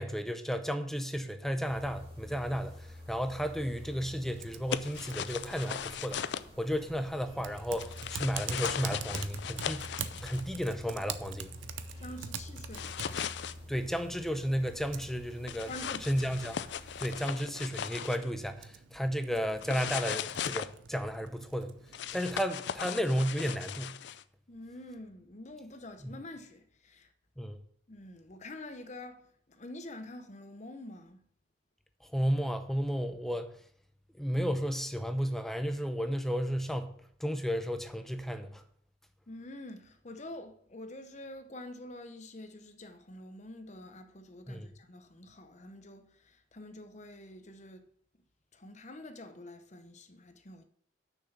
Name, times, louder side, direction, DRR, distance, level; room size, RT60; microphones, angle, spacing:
voice 1, 0.0-9.9 10.2-11.5 13.7-15.7 16.1-16.6 17.0-21.8 22.1-23.9 26.0-26.1 27.4-27.6 32.1-33.5 34.2-36.9 37.2-38.6 44.5-44.7, equal, ahead, 0.6 m, -33 dB
sound 1, 1.6-17.2, left 1 dB, 25° right, 2.9 m, -49 dB
Typing, 4.4-22.4, right 7 dB, 80° right, 0.6 m, -46 dB
sound 2, 4.7-6.4 7.8-10.4 12.7-13.5 15.5-18.3 19.6-20.7 21.9-24.2, left 8 dB, 65° left, 0.4 m, -38 dB
voice 2, 12.0-13.2 15.7-16.1 24.5-27.1 27.9-31.2 39.3-47.9 48.5-50.6, left 1 dB, 40° left, 0.9 m, -47 dB
6.6 x 6.1 x 7.1 m
head